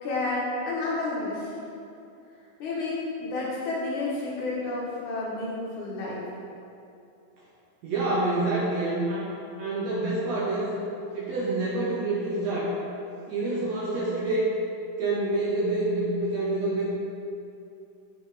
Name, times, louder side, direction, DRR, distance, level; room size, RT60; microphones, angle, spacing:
voice 1, 0.0-1.6 2.6-6.2, left 2 dB, 65° left, -5 dB, 2.7 m, -30 dB
voice 2, 7.8-10.8 11.1-12.8 13.3-14.5 15.0-16.8, right 2 dB, 70° right, -5 dB, 1.7 m, -27 dB
7.9 x 5.4 x 4.8 m, 2.6 s
omnidirectional pair, 3.9 m